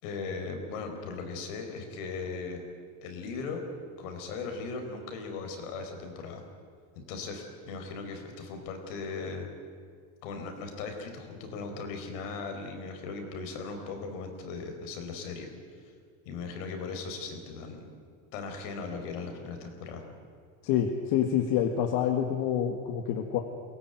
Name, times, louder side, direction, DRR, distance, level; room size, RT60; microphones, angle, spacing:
voice 1, 0.0-2.7 3.0-3.6 4.0-6.4 6.9-9.5 10.2-15.5 16.2-17.9 18.3-20.0, left 4 dB, 85° left, 4 dB, 4.7 m, -38 dB
voice 2, 20.6-23.4, left 9 dB, 65° left, 4 dB, 1.9 m, -27 dB
22.5 x 17.5 x 9.3 m, 2.1 s
supercardioid pair, 120°, 37 cm